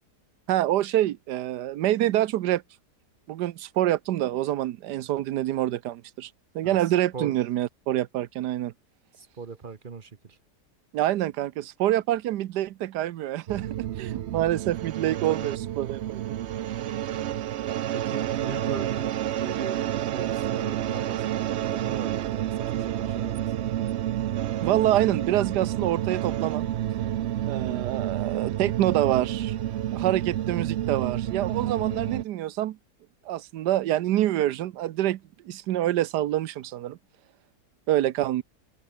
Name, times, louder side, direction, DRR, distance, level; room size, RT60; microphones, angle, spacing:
voice 1, 0.5-2.6 3.3-6.3 6.5-8.7 10.9-16.4 24.6-26.7 27.5-29.6 29.9-32.8 33.3-35.2 35.4-37.0 37.9-38.4, right 13 dB, 90° right, 1.3 m, -26 dB
voice 2, 9.2-10.4 15.1-15.5 17.9-19.8 20.1-23.7, right 5 dB, 35° right, 1.0 m, -39 dB
ps Glitched sitar lounge, 13.5-32.2, right 12 dB, 65° right, 0.7 m, -29 dB
open air
omnidirectional pair, 1.7 m